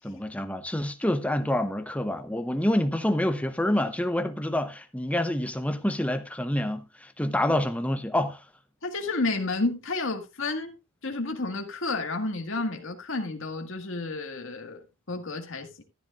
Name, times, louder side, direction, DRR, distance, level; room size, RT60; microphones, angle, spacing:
voice 1, 0.0-8.4, left 1 dB, 5° left, 0.9 m, -27 dB
voice 2, 8.8-10.7 11.0-15.8, left 3 dB, 65° left, 1.9 m, -31 dB
14.0 x 10.5 x 2.5 m
head